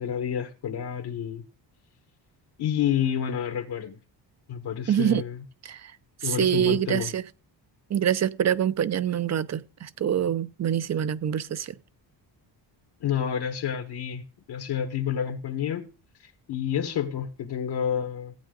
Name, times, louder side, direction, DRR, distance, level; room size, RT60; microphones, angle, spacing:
voice 1, 0.0-1.4 2.6-4.0 4.5-5.4 6.2-7.1 13.0-14.2 14.5-15.9 16.5-18.3, left 9 dB, 60° left, 1.5 m, -29 dB
voice 2, 4.9-5.2 5.7-5.8 6.2-7.2 7.9-11.7, right 9 dB, 40° right, 0.6 m, -25 dB
16.5 x 8.6 x 3.9 m
cardioid pair, 120°, 44 cm